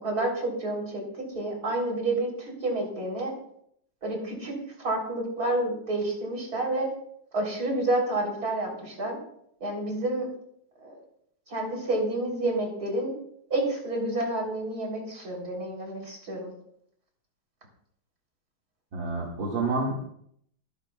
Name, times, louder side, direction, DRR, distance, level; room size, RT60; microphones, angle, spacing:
voice 1, 0.0-3.3 4.0-4.5 4.8-6.9 7.3-9.2 9.6-10.3 10.8-11.0 11.5-13.1 13.5-16.5, right 2 dB, 50° right, -1 dB, 4.4 m, -29 dB
voice 2, 18.9-20.1, right 3 dB, 75° right, -4 dB, 2.9 m, -29 dB
23.5 x 11.0 x 2.4 m, 0.69 s
omnidirectional pair, 2.1 m